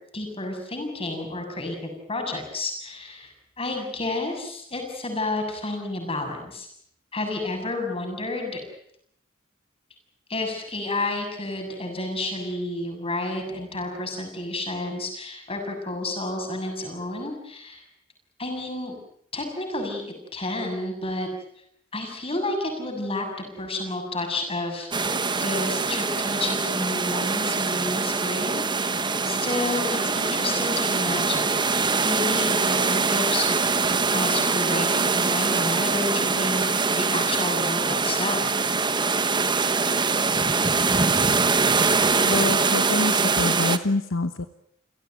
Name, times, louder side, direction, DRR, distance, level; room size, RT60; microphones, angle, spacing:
voice 1, 0.1-6.7 7.1-8.6 10.3-17.8 18.4-18.9 19.3-20.0 20.3-21.3 21.9-23.3 23.6-33.6 34.1-38.5, left 2 dB, 30° left, 4 dB, 7.4 m, -30 dB
sound 1, 24.9-43.8, right 4 dB, 20° right, 1.2 m, -23 dB
voice 2, 42.2-44.5, left 3 dB, 65° left, 10 dB, 1.1 m, -26 dB
29.5 x 17.0 x 9.2 m, 0.72 s
head